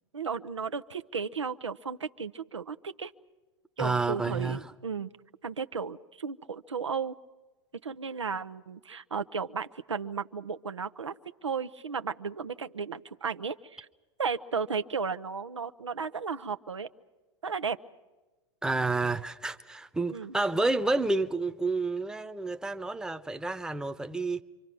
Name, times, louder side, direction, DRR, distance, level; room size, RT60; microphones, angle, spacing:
voice 1, 0.1-3.1 3.8-5.1 5.4-7.2 7.8-13.9 14.2-16.9 17.4-17.8 20.1-20.4, right 5 dB, 85° right, 0.7 m, -34 dB
voice 2, 3.8-4.7 18.6-24.4, right 3 dB, 5° right, 0.9 m, -30 dB
27.5 x 24.5 x 6.1 m
figure-of-eight pair, 95°, 15 cm